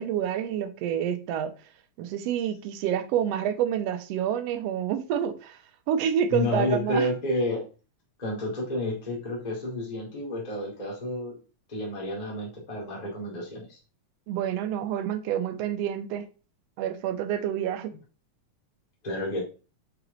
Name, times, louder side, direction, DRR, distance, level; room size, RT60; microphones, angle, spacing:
voice 1, 0.0-1.5 2.0-5.6 5.9-7.1 14.3-16.3 16.8-17.9, right 9 dB, 70° right, 1.6 m, -28 dB
voice 2, 6.3-7.6 8.2-11.3 11.7-13.8 19.0-19.4, left 1 dB, 15° left, 1.9 m, -30 dB
5.9 x 4.7 x 3.8 m
omnidirectional pair, 3.5 m